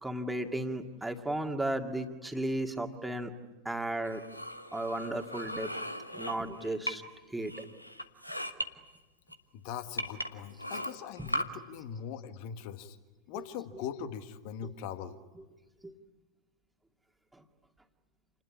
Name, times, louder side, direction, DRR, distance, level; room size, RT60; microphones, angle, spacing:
voice 1, 0.0-3.3 3.7-4.2 4.7-5.7 6.1-7.0 7.3-7.5 11.2-11.3 13.3-13.8 15.3-15.4 15.8-15.9, right 1 dB, 5° right, 4 dB, 2.2 m, -34 dB
sound 1, 4.0-7.2 7.5-8.7 9.3-9.4 10.0-11.4, equal, 90° left, 1.3 m, -37 dB
voice 2, 9.5-13.0 13.3-15.2, left 8 dB, 45° left, 10 dB, 1.8 m, -41 dB
28.5 x 20.0 x 9.9 m, 1.2 s
figure-of-eight pair, 90°, 0 cm